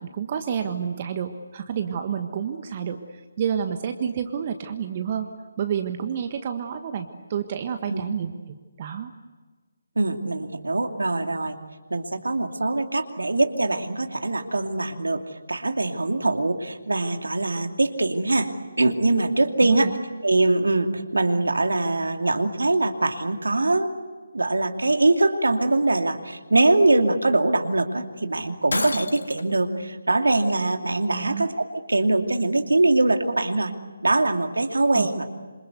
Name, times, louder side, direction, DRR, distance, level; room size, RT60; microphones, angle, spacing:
voice 1, 0.0-5.3 5.6-8.3 8.8-9.1 19.6-20.0 31.1-31.5 34.9-35.1, right 8 dB, 35° right, 7 dB, 1.5 m, -29 dB
voice 2, 10.0-11.5 11.9-15.2 15.5-19.9 20.2-23.9 24.3-33.7 34.0-35.3, right 2 dB, 70° right, 5 dB, 2.6 m, -22 dB
Shatter, 28.7-29.6, left 3 dB, 65° left, 1.9 m, -29 dB
27.5 x 26.5 x 8.1 m, 1.4 s
figure-of-eight pair, 150°, 0 cm